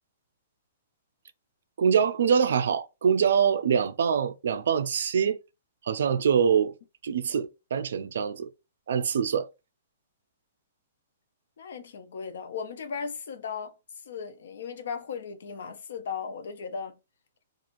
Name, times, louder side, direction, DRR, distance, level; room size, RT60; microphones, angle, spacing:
voice 1, 1.8-5.4 5.9-6.7 7.0-8.5 8.9-9.5, right 7 dB, 70° right, 0.4 m, -24 dB
voice 2, 11.6-13.7 14.0-17.0, left 6 dB, 65° left, 0.5 m, -36 dB
3.0 x 2.4 x 2.5 m
hypercardioid pair, 170°, 0 cm